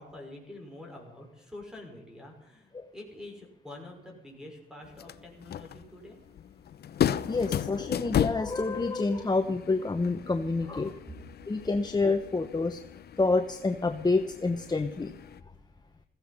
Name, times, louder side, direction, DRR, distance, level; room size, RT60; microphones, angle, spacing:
voice 1, 0.0-6.2 11.1-11.2, left 1 dB, 5° right, 2 dB, 5.6 m, -46 dB
sound 1, 4.8-15.4, left 10 dB, 55° left, 0.7 m, -35 dB
voice 2, 7.3-10.9 11.5-12.8 13.2-15.1, left 3 dB, 20° left, 7 dB, 1.0 m, -28 dB
15.5 x 15.0 x 5.6 m, 0.94 s
cardioid pair, 90°, 20 cm